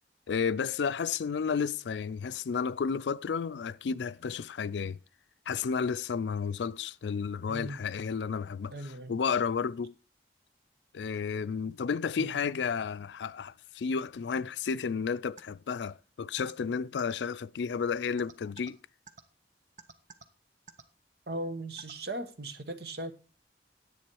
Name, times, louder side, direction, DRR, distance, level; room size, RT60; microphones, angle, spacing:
voice 1, 0.3-5.0 5.5-8.7 9.1-9.9 10.9-18.8, left 6 dB, 85° left, 0.4 m, -32 dB
voice 2, 8.7-9.2 12.2-12.4 21.3-23.1, right 1 dB, 60° right, 1.1 m, -38 dB
sound 1, 15.4-15.5 16.4-16.5 17.0-17.1 18.2-18.7 19.1-19.2 19.8-20.2 20.7-20.8 21.8-21.9, right 5 dB, 45° right, 0.8 m, -48 dB
10.5 x 8.3 x 4.6 m
head